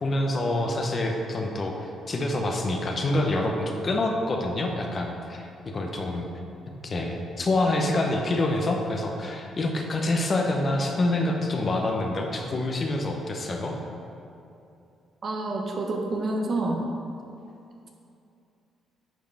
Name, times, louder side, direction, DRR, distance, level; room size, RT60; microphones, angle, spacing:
voice 1, 0.0-5.5 5.7-6.3 6.8-13.8, left 2 dB, 40° left, 1 dB, 0.9 m, -26 dB
voice 2, 15.2-16.8, right 2 dB, 50° right, 1 dB, 1.0 m, -28 dB
9.2 x 4.7 x 3.5 m, 2.6 s
cardioid pair, 90°, 0 cm